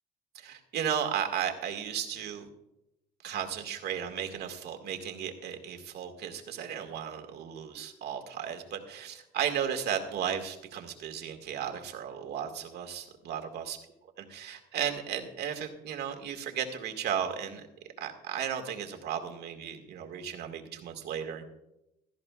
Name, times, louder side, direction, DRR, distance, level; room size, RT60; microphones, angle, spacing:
voice 1, 0.3-2.5 3.2-13.8 14.2-17.6 18.0-21.4, right 8 dB, 75° right, 5 dB, 1.9 m, -35 dB
17.0 x 14.0 x 2.4 m, 0.89 s
cardioid pair, 120°, 17 cm